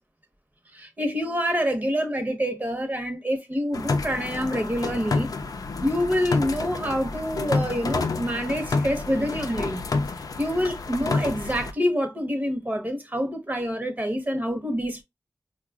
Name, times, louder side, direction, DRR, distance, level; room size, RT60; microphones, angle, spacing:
voice 1, 0.7-5.3 5.8-9.8 10.4-15.0, equal, 30° right, 0.9 m, -27 dB
sound 1, 3.7-11.7, left 3 dB, 85° left, 0.4 m, -29 dB
4.6 x 2.3 x 2.3 m
wide cardioid pair, 65°, 6 cm